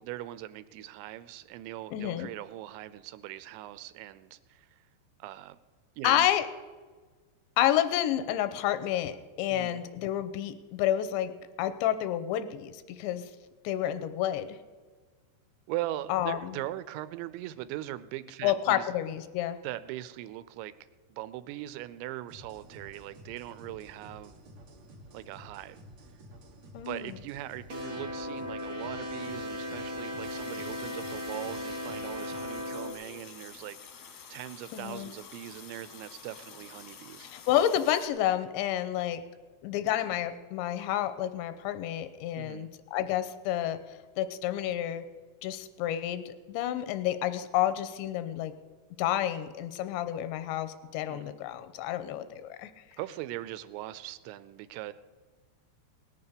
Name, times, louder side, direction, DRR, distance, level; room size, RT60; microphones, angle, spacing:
voice 1, 0.0-4.8 5.2-5.6 6.0-6.3 9.5-9.8 15.7-18.9 19.6-20.7 21.1-24.4 25.1-25.8 26.9-37.3 42.4-42.7 51.1-51.3 53.0-54.9, right 14 dB, 90° right, 14 dB, 3.0 m, -40 dB
voice 2, 1.9-2.3 6.0-6.5 7.6-11.3 11.6-13.2 13.6-14.6 16.1-16.5 18.4-19.6 26.7-27.1 34.7-35.1 37.2-39.2 39.6-43.8 44.2-45.0 45.4-48.5 49.0-52.7, left 12 dB, 85° left, 11 dB, 2.9 m, -29 dB
sound 1, 22.3-32.7, equal, 60° right, 1.7 m, -52 dB
sound 2, 27.7-32.9, left 1 dB, 40° right, 1.2 m, -37 dB
Water tap faucet, 30.2-38.1, left 7 dB, 65° left, 1.7 m, -49 dB
18.5 x 7.1 x 6.7 m, 1.4 s
omnidirectional pair, 5.1 m